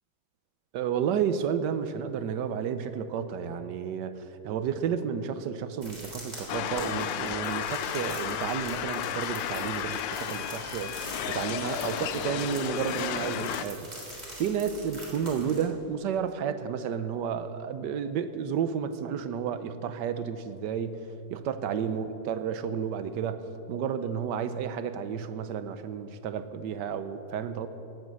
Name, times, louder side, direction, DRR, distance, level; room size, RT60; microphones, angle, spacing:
voice 1, 0.7-13.9 14.4-21.0 21.3-27.7, right 7 dB, 75° right, 11 dB, 1.3 m, -31 dB
sound 1, 5.8-15.6, right 1 dB, 20° right, 3.5 m, -44 dB
sound 2, 6.5-13.6, left 10 dB, 85° left, 1.4 m, -33 dB
18.0 x 7.5 x 7.6 m, 3.0 s
omnidirectional pair, 1.9 m